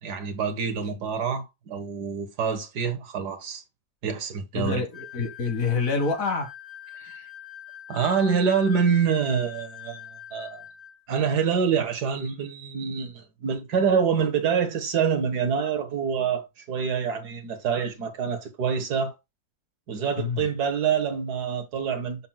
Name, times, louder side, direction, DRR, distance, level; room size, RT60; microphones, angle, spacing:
voice 1, 0.0-3.6 4.0-4.8 7.0-7.3 7.9-10.6 11.1-19.2 19.9-22.3, right 6 dB, 60° right, 1.8 m, -26 dB
voice 2, 4.5-6.5 20.2-20.5, left 4 dB, 50° left, 1.9 m, -27 dB
sound 1, 4.9-11.0, left 10 dB, 20° left, 1.8 m, -43 dB
10.0 x 5.8 x 2.2 m
omnidirectional pair, 2.0 m